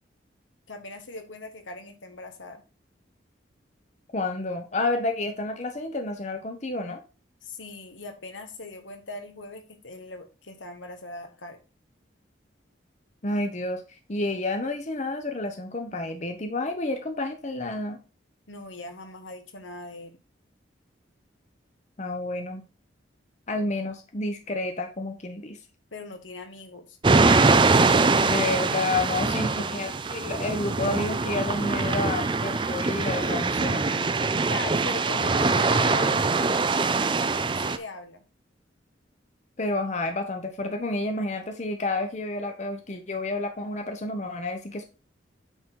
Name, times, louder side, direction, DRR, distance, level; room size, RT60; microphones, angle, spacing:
voice 1, 0.7-2.6 7.4-11.6 18.5-20.1 25.9-27.0 29.4-29.9 34.4-36.4 37.4-38.2, left 2 dB, 80° left, 1.5 m, -40 dB
voice 2, 4.1-7.0 13.2-18.0 22.0-22.7 23.5-25.6 28.2-33.8 39.6-44.8, left 2 dB, 35° left, 0.8 m, -30 dB
sound 1, 27.0-37.8, right 3 dB, 25° right, 0.4 m, -23 dB
8.9 x 4.0 x 4.5 m
head